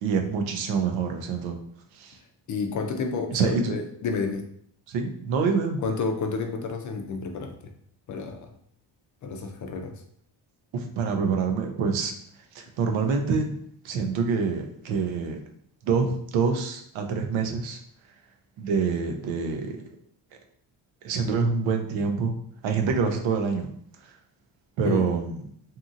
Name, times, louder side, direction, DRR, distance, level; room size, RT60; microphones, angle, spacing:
voice 1, 0.0-1.6 1.9-2.2 3.3-3.7 4.9-5.8 10.7-12.1 12.5-13.6 13.8-15.4 15.8-17.8 18.6-19.8 21.0-22.4 22.6-23.7 24.8-25.4, right 5 dB, 90° right, 4 dB, 0.6 m, -26 dB
voice 2, 2.5-4.4 5.8-7.7 8.1-8.5 9.2-10.0 24.8-25.0, left 4 dB, 45° left, 5 dB, 0.4 m, -30 dB
2.8 x 2.6 x 2.4 m, 0.66 s
cardioid pair, 125°, 45 cm